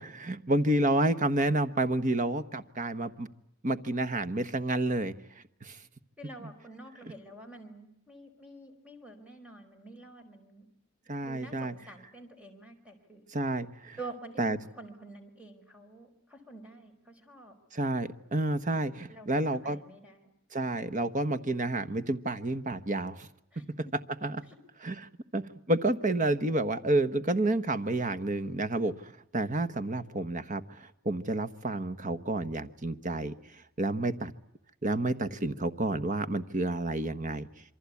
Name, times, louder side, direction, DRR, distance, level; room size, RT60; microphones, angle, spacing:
voice 1, 0.0-3.3 3.6-5.1 5.6-5.8 11.1-11.7 13.3-14.0 14.4-14.6 17.7-19.8 20.5-23.3 24.2-24.4 24.8-24.9 25.3-33.3 33.8-34.3 34.8-37.5, right 2 dB, 35° right, 12 dB, 1.2 m, -30 dB
voice 2, 6.2-10.7 11.2-13.2 14.0-17.6 19.1-20.3 23.5-23.9 24.4-24.6, right 2 dB, 5° right, 5 dB, 4.9 m, -48 dB
27.5 x 24.0 x 8.4 m, 0.81 s
head